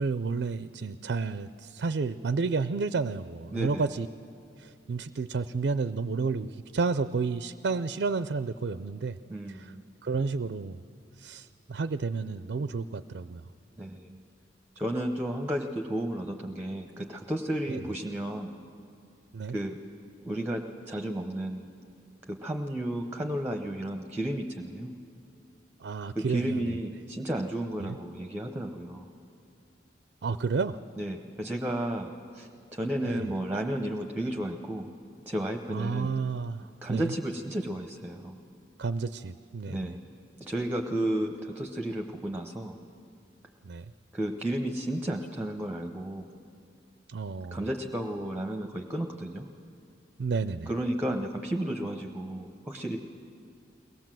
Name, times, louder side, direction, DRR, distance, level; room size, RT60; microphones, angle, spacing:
voice 1, 0.0-4.1 4.6-9.2 9.5-9.7 10.0-10.8 11.2-13.4 17.7-17.8 19.3-19.6 25.8-26.8 27.8-28.0 30.2-30.8 33.0-33.3 35.7-37.1 38.8-39.9 43.6-43.9 47.1-47.6 50.2-50.7, right 4 dB, 60° right, 12 dB, 0.4 m, -31 dB
voice 2, 3.5-3.8 9.3-9.8 13.8-14.2 14.8-18.6 19.5-19.8 20.3-21.7 22.3-25.0 26.1-29.1 31.0-34.9 35.3-36.1 36.8-38.4 39.7-40.0 40.4-42.8 44.1-46.3 47.5-49.5 50.7-53.0, right 1 dB, 10° right, 4 dB, 0.8 m, -33 dB
23.0 x 18.5 x 7.6 m, 2.5 s
head